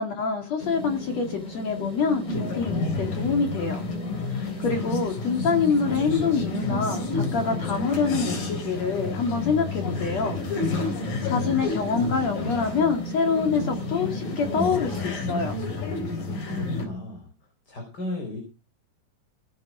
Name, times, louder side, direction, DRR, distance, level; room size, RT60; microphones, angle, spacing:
voice 1, 0.0-3.8 4.3-10.4 10.9-11.0 11.3-15.6, left 5 dB, 55° left, 4 dB, 3.2 m, -26 dB
sound 1, 0.6-16.0, left 2 dB, 15° left, 3.5 m, -37 dB
sound 2, 2.3-16.9, left 3 dB, 85° left, 5.5 m, -30 dB
voice 2, 16.2-17.3 17.7-18.4, left 1 dB, 30° left, 3 dB, 4.7 m, -35 dB
18.5 x 9.5 x 4.9 m, 0.32 s
omnidirectional pair, 3.8 m